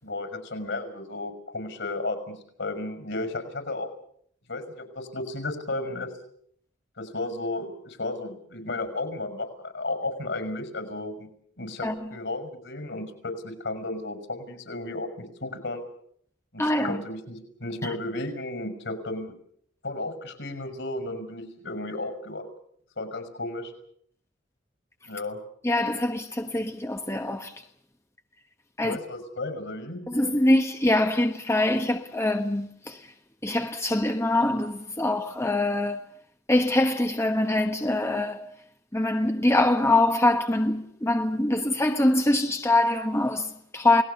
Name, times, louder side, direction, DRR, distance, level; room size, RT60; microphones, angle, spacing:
voice 1, 0.0-2.2 2.6-3.9 4.5-6.1 7.0-11.3 11.6-15.8 16.5-19.3 19.8-22.5 23.0-23.7 25.1-25.4 28.8-30.1, left 2 dB, 70° left, 6.2 m, -33 dB
voice 2, 16.6-17.0 17.8-17.9 25.6-27.6 28.8-29.0 30.1-33.1 33.4-36.0 36.5-38.5 38.9-44.0, left 1 dB, 15° left, 1.2 m, -24 dB
29.5 x 19.5 x 7.0 m
head